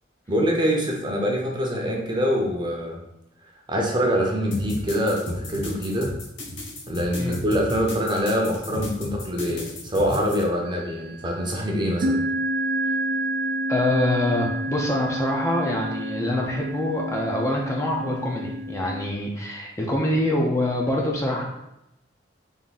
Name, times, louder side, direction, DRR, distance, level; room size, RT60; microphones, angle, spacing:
voice 1, 0.3-3.0 3.7-6.1 6.9-12.2, equal, 25° right, 0 dB, 0.7 m, -24 dB
sound 1, 4.5-10.4, left 1 dB, 75° left, 1.0 m, -34 dB
sound 2, 10.7-11.2 12.0-19.1, right 1 dB, 55° right, 0.3 m, -29 dB
voice 2, 13.7-21.4, left 1 dB, 15° left, -1 dB, 0.5 m, -25 dB
3.5 x 2.5 x 4.0 m, 0.86 s
head